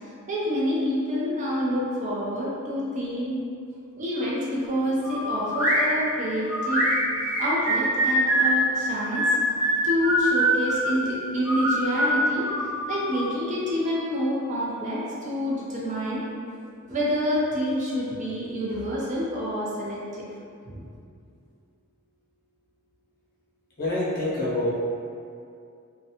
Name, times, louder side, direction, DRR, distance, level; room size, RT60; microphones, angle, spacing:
voice 1, 0.0-3.4 4.0-6.9 7.4-9.3 9.8-12.5 12.9-16.2 16.9-20.3 20.7-20.8, equal, 35° right, -6 dB, 0.5 m, -27 dB
sound 1, 5.0-5.8 6.5-8.6 9.1-10.9 11.4-13.3, right 1 dB, 10° right, 0.8 m, -24 dB
voice 2, 23.8-24.7, left 1 dB, 45° left, -8 dB, 0.7 m, -26 dB
2.5 x 2.1 x 2.7 m, 2.4 s
head